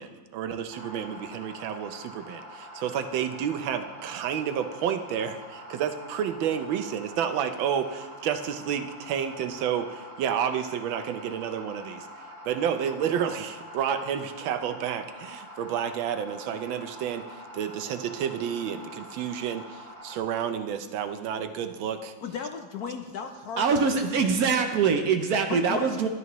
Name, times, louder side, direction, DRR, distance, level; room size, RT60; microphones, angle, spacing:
voice 1, 0.0-12.1 12.4-22.1, right 8 dB, 90° right, 8 dB, 1.5 m, -30 dB
sound 1, 0.7-20.2, equal, 25° right, 2.6 m, -45 dB
voice 2, 22.2-24.3 25.5-26.1, left 6 dB, 70° left, 5 dB, 0.9 m, -36 dB
voice 3, 23.6-26.1, right 5 dB, 65° right, 6 dB, 1.0 m, -23 dB
12.5 x 11.0 x 3.0 m, 1.3 s
omnidirectional pair, 2.1 m